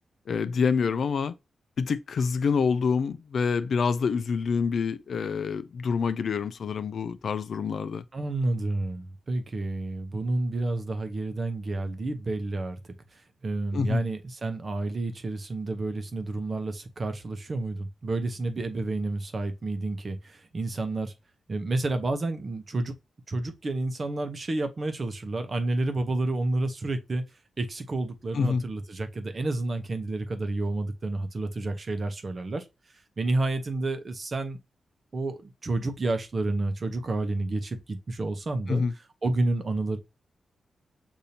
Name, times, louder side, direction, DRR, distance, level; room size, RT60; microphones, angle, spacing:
voice 1, 0.3-1.3 1.8-8.0 13.7-14.0 28.3-28.6 38.7-38.9, left 5 dB, 60° left, 0.4 m, -26 dB
voice 2, 8.1-12.8 13.1-21.1 21.5-22.9 23.3-27.2 27.6-32.7 33.2-34.6 35.1-38.8 39.2-40.0, right 2 dB, 40° right, 0.8 m, -30 dB
6.7 x 2.7 x 2.8 m
wide cardioid pair, 130°, 0 cm